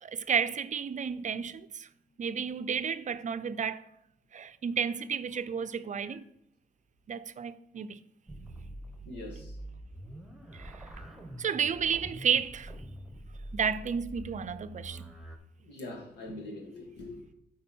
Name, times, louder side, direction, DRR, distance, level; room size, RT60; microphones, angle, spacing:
voice 1, 0.0-1.9 2.2-3.8 4.3-6.2 7.1-8.0 10.5-10.9 11.4-12.7 13.5-15.1, right 7 dB, 45° right, 0.5 m, -32 dB
sound 1, 8.3-15.4, right 1 dB, ahead, 1.3 m, -45 dB
voice 2, 9.1-9.5 15.6-17.3, left 1 dB, 90° left, 2.0 m, -43 dB
8.8 x 4.7 x 4.4 m
cardioid pair, 85°, 17 cm